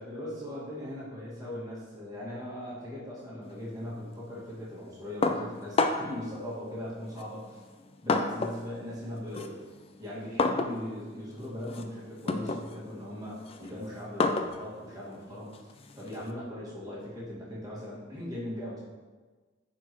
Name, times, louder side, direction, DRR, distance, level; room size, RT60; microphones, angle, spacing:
voice 1, 0.0-7.6 8.0-9.6 10.0-18.8, left 1 dB, 20° right, -8 dB, 1.9 m, -39 dB
sound 1, 5.2-6.2 7.1-8.7 9.0-16.3, left 3 dB, 30° left, 0.4 m, -31 dB
9.9 x 4.6 x 3.1 m, 1.4 s
head